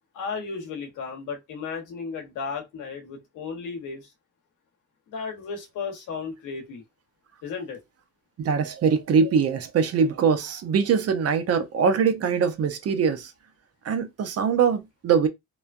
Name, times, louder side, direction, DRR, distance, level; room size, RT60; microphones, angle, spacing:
voice 1, 0.1-4.1 5.1-6.8 7.4-7.8, left 5 dB, 85° left, 1.1 m, -34 dB
voice 2, 8.4-13.3 13.8-15.3, right 6 dB, 55° right, 0.6 m, -22 dB
3.1 x 2.1 x 2.5 m
cardioid pair, 90°, 30 cm